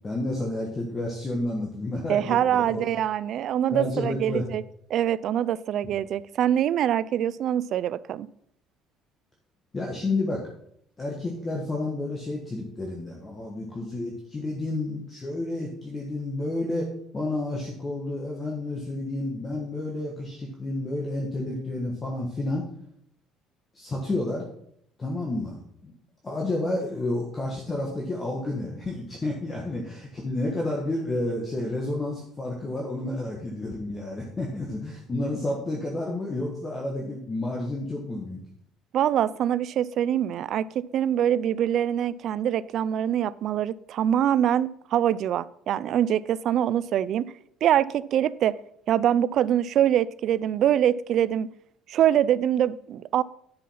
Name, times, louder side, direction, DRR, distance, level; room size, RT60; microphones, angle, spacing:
voice 1, 0.0-2.9 3.7-4.5 9.7-10.5 11.0-22.7 23.7-24.5 25.0-25.9 26.2-38.4, left 2 dB, 20° left, -1 dB, 1.4 m, -30 dB
voice 2, 2.1-4.6 4.9-8.3 38.9-47.3 47.6-48.6 48.9-51.5 51.9-53.2, right 10 dB, 50° right, 18 dB, 0.4 m, -24 dB
10.5 x 5.5 x 5.7 m, 0.70 s
cardioid pair, 155°, 0 cm